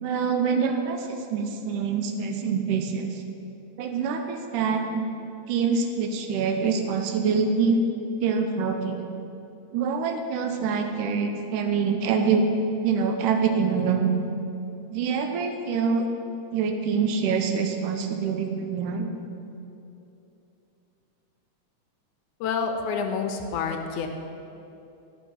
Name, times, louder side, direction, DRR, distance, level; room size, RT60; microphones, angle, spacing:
voice 1, 0.0-3.2 3.8-5.0 5.5-7.8 8.2-9.1 9.7-12.5 12.8-14.2 14.9-16.1 16.5-19.1, right 5 dB, 85° right, 5 dB, 2.2 m, -25 dB
voice 2, 22.4-24.1, left 5 dB, 85° left, 5 dB, 2.1 m, -28 dB
13.0 x 6.0 x 5.5 m, 2.8 s
omnidirectional pair, 3.5 m